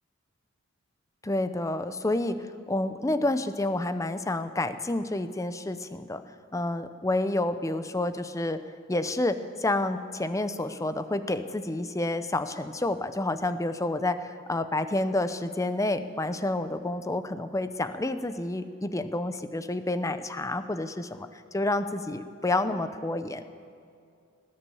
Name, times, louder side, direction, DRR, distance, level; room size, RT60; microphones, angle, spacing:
voice 1, 1.2-2.4 2.7-6.2 6.5-8.6 8.9-14.2 14.5-21.3 21.5-23.4, left 2 dB, 15° left, 11 dB, 0.6 m, -29 dB
19.0 x 10.0 x 6.9 m, 2.4 s
head